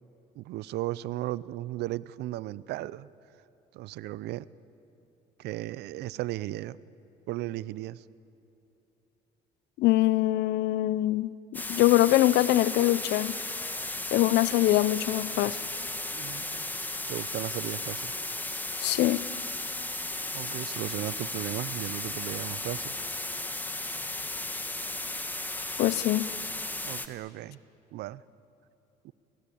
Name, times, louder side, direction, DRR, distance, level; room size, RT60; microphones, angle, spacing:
voice 1, 0.4-3.1 3.7-4.5 5.4-6.8 7.3-8.0 16.1-16.7 17.1-18.1 20.3-22.9 26.8-27.6 27.9-28.2 29.0-29.1, right 16 dB, 80° right, 0.6 m, -35 dB
voice 2, 9.8-13.3 14.1-15.6 18.8-19.2 25.8-26.3, left 15 dB, 80° left, 0.7 m, -23 dB
sound 1, 11.5-27.1, left 2 dB, 10° left, 1.5 m, -35 dB
29.5 x 22.0 x 8.6 m
cardioid pair, 110°, 17 cm